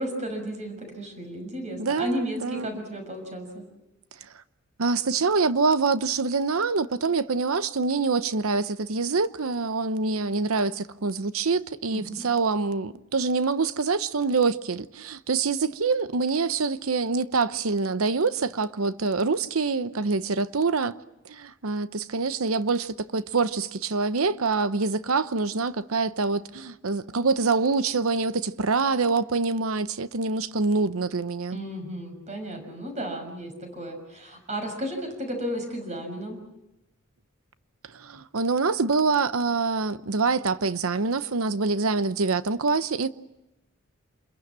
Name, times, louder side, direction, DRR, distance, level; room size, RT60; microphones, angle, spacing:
voice 1, 0.0-3.6 11.9-12.2 31.5-36.4, equal, 35° right, 6.2 m, -33 dB
voice 2, 1.8-2.7 4.8-21.0 21.3-31.6 37.9-43.1, right 4 dB, 90° right, 0.9 m, -25 dB
27.5 x 22.0 x 7.5 m
head